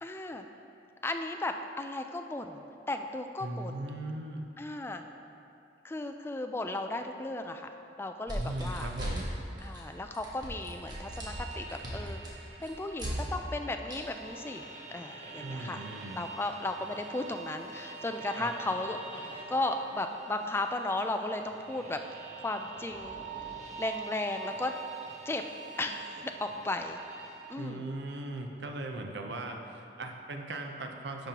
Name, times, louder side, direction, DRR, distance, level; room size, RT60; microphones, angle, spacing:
voice 1, 0.0-0.5 1.0-3.8 4.6-5.0 5.8-7.7 8.0-8.9 9.6-12.2 12.6-14.6 14.9-15.9 16.1-22.1 22.4-23.2 23.8-24.7 25.3-25.4 25.8-27.0 27.5-27.9, left 2 dB, 15° left, 6 dB, 0.3 m, -35 dB
voice 2, 3.4-4.5 8.3-9.3 15.4-16.2 18.4-18.5 27.6-31.3, right 2 dB, 75° right, 3 dB, 0.6 m, -38 dB
sound 1, 8.3-9.3 9.6-9.9 10.1-13.1 13.9-14.0, equal, 25° right, 1.2 m, -38 dB
sound 2, 9.5-27.5, right 4 dB, 45° right, 0.8 m, -45 dB
10.5 x 5.3 x 2.9 m, 2.7 s
head